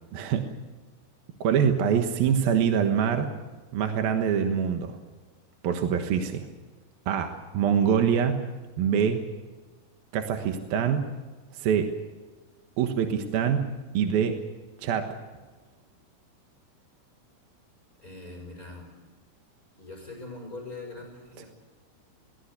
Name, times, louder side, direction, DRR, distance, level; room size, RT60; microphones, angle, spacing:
voice 1, 0.1-0.5 1.4-3.3 3.7-5.0 5.6-6.5 7.1-8.4 8.8-9.2 10.1-11.1 11.5-11.9 12.8-14.4 14.8-15.1, right 8 dB, 65° right, 5 dB, 2.8 m, -25 dB
voice 2, 18.0-18.8 19.8-21.5, left 3 dB, 20° left, 1 dB, 5.5 m, -42 dB
22.0 x 18.5 x 8.2 m, 1.3 s
omnidirectional pair, 5.4 m